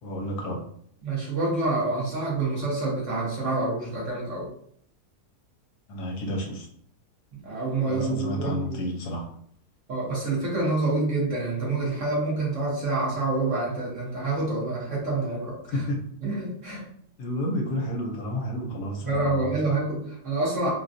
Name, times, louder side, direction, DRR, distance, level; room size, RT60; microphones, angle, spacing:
voice 1, 0.0-0.7 5.9-6.7 7.9-9.3 15.7-16.0 16.7-16.9 17.2-19.6, left 1 dB, 80° left, 2 dB, 1.2 m, -31 dB
voice 2, 1.0-4.5 7.3-8.8 9.9-15.5 16.2-16.8 19.0-20.7, right 2 dB, 55° right, -5 dB, 1.3 m, -27 dB
3.8 x 2.2 x 2.5 m, 0.64 s
omnidirectional pair, 1.7 m